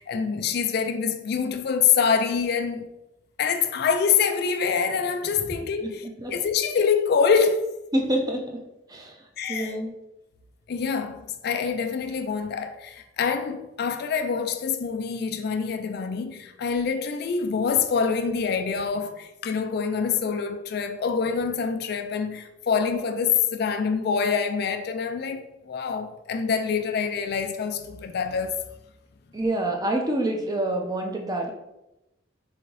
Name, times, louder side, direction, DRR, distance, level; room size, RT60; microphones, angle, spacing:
voice 1, 0.0-2.9 3.4-7.8 9.4-9.8 10.7-28.5, left 6 dB, 55° left, 0.3 m, -25 dB
voice 2, 7.9-9.2 9.5-9.9 29.3-31.5, right 1 dB, 20° right, 0.5 m, -27 dB
3.8 x 3.5 x 3.2 m
head